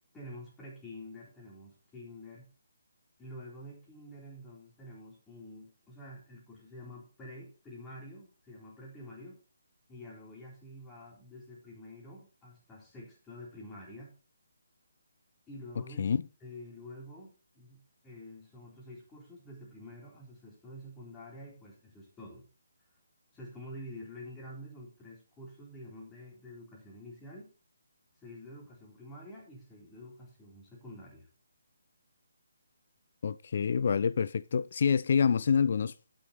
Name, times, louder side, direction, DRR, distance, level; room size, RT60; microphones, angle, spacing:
voice 1, 0.1-2.5 3.2-9.4 9.9-14.1 15.5-16.0 16.4-22.5 23.3-27.5 28.2-31.3, left 1 dB, 10° left, 3.9 m, -48 dB
voice 2, 33.2-35.9, left 6 dB, 50° left, 0.5 m, -27 dB
12.5 x 6.5 x 4.2 m
figure-of-eight pair, 145°, 0 cm